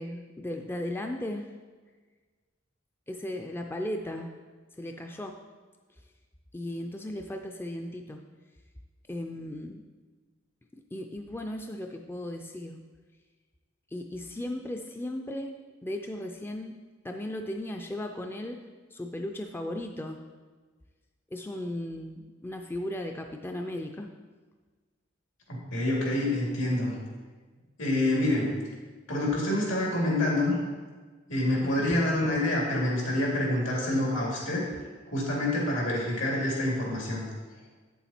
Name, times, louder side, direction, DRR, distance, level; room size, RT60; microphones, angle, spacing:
voice 1, 0.0-1.5 3.1-4.3 4.8-5.4 6.5-8.2 9.1-9.8 10.9-12.8 13.9-15.5 15.8-16.8 17.0-18.6 18.9-20.2 21.3-24.1 31.6-32.0, left 1 dB, 10° left, 4 dB, 0.4 m, -36 dB
voice 2, 25.5-26.9 27.8-28.5 29.1-30.6 31.3-34.6 35.1-37.2, left 1 dB, 80° left, -3 dB, 2.7 m, -27 dB
8.5 x 7.1 x 4.3 m, 1.4 s
head